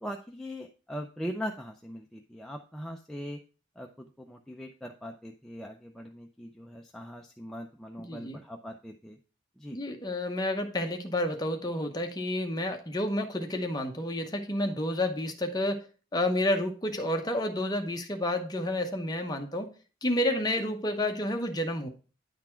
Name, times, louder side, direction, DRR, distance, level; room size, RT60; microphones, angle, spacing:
voice 1, 0.0-3.4 3.8-9.2 9.6-9.8, equal, ahead, 1 dB, 0.4 m, -40 dB
voice 2, 8.0-8.4 9.7-15.8 16.1-19.7 20.0-21.9, left 1 dB, 20° left, 4 dB, 0.8 m, -30 dB
9.6 x 4.0 x 4.4 m, 0.36 s
head